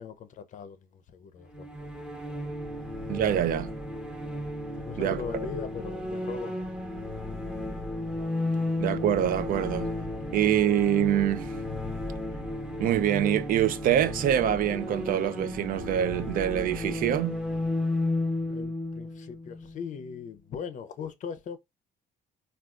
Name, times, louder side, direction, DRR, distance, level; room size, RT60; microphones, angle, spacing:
voice 1, 0.0-1.8 4.8-6.7 18.5-21.6, left 6 dB, 50° left, 0.5 m, -39 dB
sound 1, 1.5-20.2, left 1 dB, 5° right, 0.9 m, -33 dB
voice 2, 3.1-3.7 5.0-5.2 8.8-9.9 10.3-11.5 12.8-17.4, right 10 dB, 55° right, 0.4 m, -25 dB
3.5 x 2.3 x 2.4 m
cardioid pair, 110°, 17 cm